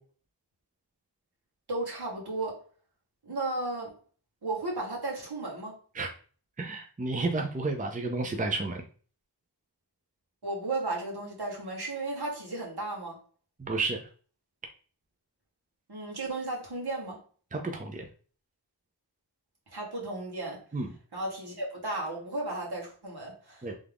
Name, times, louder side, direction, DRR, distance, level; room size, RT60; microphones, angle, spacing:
voice 1, 1.7-2.6 3.2-4.0 4.4-5.8 10.4-13.2 15.9-17.2 19.7-20.6 21.1-23.7, right 2 dB, 65° right, 1.8 m, -34 dB
voice 2, 6.6-8.8 13.6-14.0 17.5-18.0 20.7-20.9 23.6-23.7, right 3 dB, 20° right, 0.6 m, -31 dB
3.6 x 3.5 x 3.5 m
wide cardioid pair, 75°, 42 cm